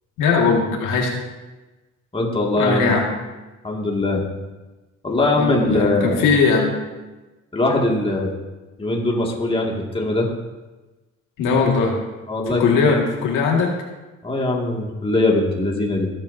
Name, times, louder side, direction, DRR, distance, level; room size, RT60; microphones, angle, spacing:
voice 1, 0.2-1.1 2.6-3.1 5.4-6.8 11.4-12.0 12.5-13.7, left 4 dB, 90° left, 0 dB, 2.0 m, -19 dB
voice 2, 2.1-2.9 3.6-4.2 5.0-6.2 7.5-8.3 8.8-10.3 12.3-12.9 14.2-16.1, left 2 dB, 20° left, -1 dB, 2.1 m, -21 dB
16.0 x 8.7 x 2.7 m, 1.2 s
cardioid pair, 90°, 30 cm